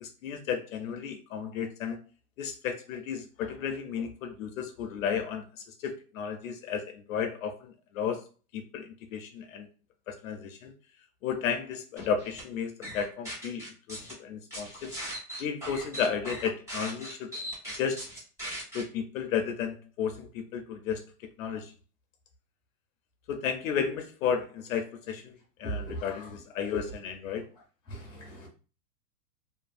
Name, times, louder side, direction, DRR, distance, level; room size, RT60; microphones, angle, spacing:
voice 1, 0.0-2.0 2.4-8.2 8.5-9.7 10.1-10.7 11.2-14.9 15.4-17.4 17.8-18.0 18.7-21.1 21.4-21.7 23.3-25.3 25.6-27.4, left 7 dB, 60° left, 7 dB, 0.5 m, -33 dB
sound 1, 12.0-12.4 12.8-14.1 14.5-18.8, equal, 5° right, 1.0 m, -39 dB
voice 2, 25.7-26.0 26.7-26.8 27.9-28.5, right 1 dB, 10° left, -3 dB, 0.6 m, -38 dB
2.6 x 2.5 x 2.4 m, 0.36 s
hypercardioid pair, 145°, 48 cm